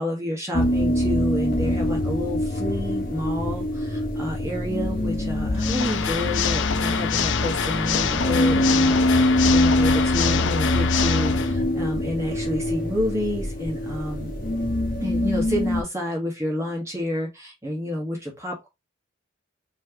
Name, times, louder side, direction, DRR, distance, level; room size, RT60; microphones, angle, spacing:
voice 1, 0.0-14.3 15.0-18.7, left 1 dB, 15° right, 1.5 m, -29 dB
sound 1, 0.5-15.8, left 1 dB, 45° left, 1.0 m, -24 dB
Water / Mechanisms, 5.5-11.5, left 7 dB, 70° left, 0.5 m, -26 dB
4.4 x 3.2 x 2.9 m
head